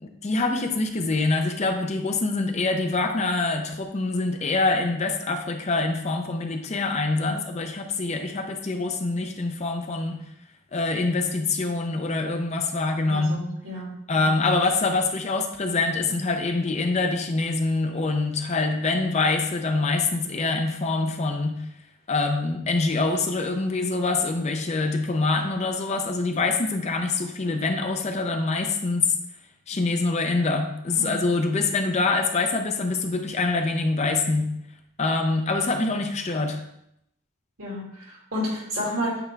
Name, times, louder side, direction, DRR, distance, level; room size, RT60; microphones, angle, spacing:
voice 1, 0.0-10.2 10.7-13.4 14.1-21.6 22.1-29.1 29.7-34.5 35.0-36.6, left 3 dB, 30° left, 5 dB, 0.5 m, -25 dB
voice 2, 13.1-14.3 30.9-31.3 37.6-39.2, equal, 80° right, -4 dB, 2.5 m, -31 dB
7.9 x 3.5 x 3.3 m, 0.76 s
head